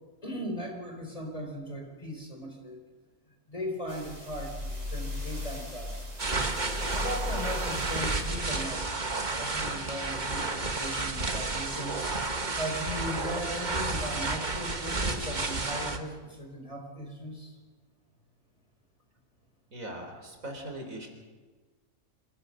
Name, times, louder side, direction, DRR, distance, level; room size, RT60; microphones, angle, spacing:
voice 1, 0.2-2.8 3.5-6.1 6.9-8.9 9.4-12.0 12.6-17.5, equal, 25° left, 2 dB, 4.5 m, -38 dB
sound 1, 3.9-10.4 10.9-11.0, left 2 dB, 55° right, 6.3 m, -38 dB
sound 2, 6.2-16.0, right 3 dB, 35° right, 1.6 m, -31 dB
voice 2, 19.7-21.1, right 1 dB, 75° right, 3 dB, 4.1 m, -40 dB
26.0 x 18.0 x 6.4 m, 1.3 s
omnidirectional pair, 1.4 m